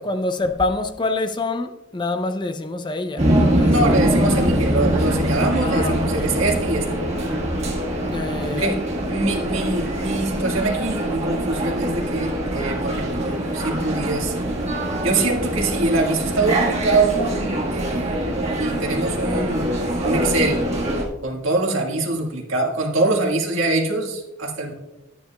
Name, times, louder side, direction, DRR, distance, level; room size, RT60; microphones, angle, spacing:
voice 1, 0.0-4.5 5.6-6.3 8.1-8.7, left 2 dB, 25° left, 0.5 m, -27 dB
sound 1, 3.2-21.0, right 1 dB, 35° right, 1.5 m, -23 dB
voice 2, 3.7-6.9 8.5-8.8 9.1-14.4 15.0-17.3 17.7-18.2 18.6-19.7 20.0-20.6 21.2-24.7, right 2 dB, 90° right, 1.7 m, -23 dB
11.5 x 9.3 x 2.3 m
head